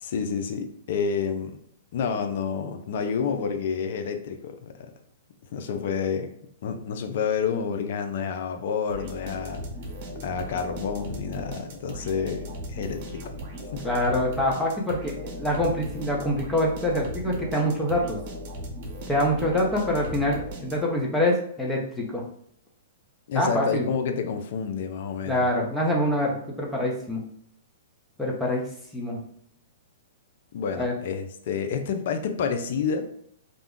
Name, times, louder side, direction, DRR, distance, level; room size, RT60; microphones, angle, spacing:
voice 1, 0.0-1.6 1.9-4.9 5.5-6.3 6.6-9.7 10.2-13.2 13.7-13.9 23.3-25.5 30.5-33.1, left 6 dB, 60° left, 6 dB, 0.4 m, -29 dB
sound 1, 8.9-21.1, equal, 50° right, 0.8 m, -38 dB
voice 2, 13.8-18.2 19.1-22.2 23.3-23.8 25.3-27.2 28.2-28.6 28.9-29.2 30.8-30.9, left 1 dB, 5° left, -2 dB, 0.7 m, -25 dB
2.4 x 2.1 x 3.6 m, 0.68 s
hypercardioid pair, 125°, 0 cm